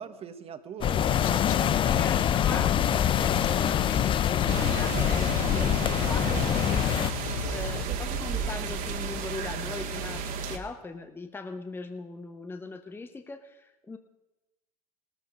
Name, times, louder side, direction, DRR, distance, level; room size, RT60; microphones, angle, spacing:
voice 1, 0.0-1.8 3.9-4.1 6.0-6.4 7.8-8.0, right 7 dB, 30° right, 11 dB, 1.4 m, -42 dB
sound 1, 0.8-7.1, left 9 dB, 25° left, 0.5 m, -25 dB
sound 2, 1.1-7.9, left 16 dB, 70° left, 0.6 m, -35 dB
voice 2, 1.8-7.1 7.5-14.0, left 3 dB, 10° left, 8 dB, 0.9 m, -40 dB
sound 3, 4.5-10.6, right 5 dB, 50° right, 2.0 m, -33 dB
18.5 x 14.0 x 5.2 m, 1.0 s
hypercardioid pair, 105°, 19 cm